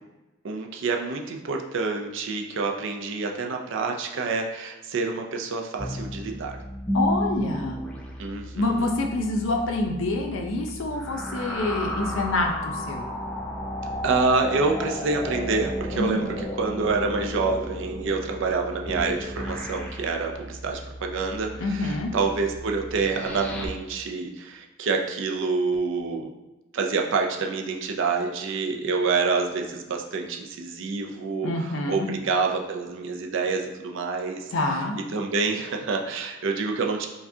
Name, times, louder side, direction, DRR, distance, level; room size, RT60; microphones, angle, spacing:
voice 1, 0.4-6.6 8.2-8.9 14.0-16.3 16.6-26.3 26.7-34.5 35.1-37.1, right 4 dB, 65° right, 3 dB, 0.4 m, -27 dB
sound 1, 5.8-23.7, equal, 5° left, 0.3 m, -33 dB
voice 2, 6.9-7.8 8.5-13.1 15.9-16.3 21.6-22.1 31.4-32.1 34.5-35.0, left 2 dB, 70° left, 2 dB, 0.6 m, -26 dB
4.7 x 2.3 x 2.7 m, 1.1 s
head